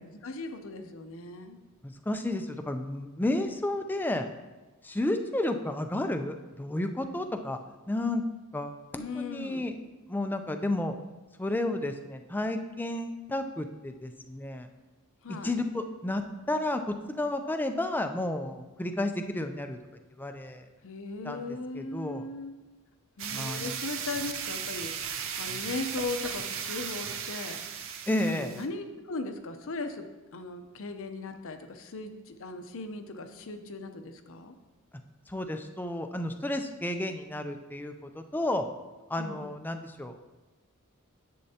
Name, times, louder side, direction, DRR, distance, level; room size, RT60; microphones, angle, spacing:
voice 1, 0.0-1.6 8.9-9.7 15.2-15.5 20.8-22.5 23.2-27.6 28.2-30.1 30.3-34.5 39.2-39.5, left 3 dB, 65° left, 7 dB, 0.7 m, -38 dB
voice 2, 1.8-4.3 4.8-7.6 7.9-8.2 8.5-9.7 10.1-10.9 11.4-14.7 15.3-19.8 20.2-20.7 21.2-22.2 23.3-23.8 25.4-25.6 28.1-28.6 35.3-38.7 39.1-40.2, left 1 dB, 10° left, 6 dB, 0.4 m, -32 dB
sound 1, 23.2-28.7, right 7 dB, 65° right, 0.6 m, -36 dB
9.9 x 7.7 x 2.8 m, 1.1 s
head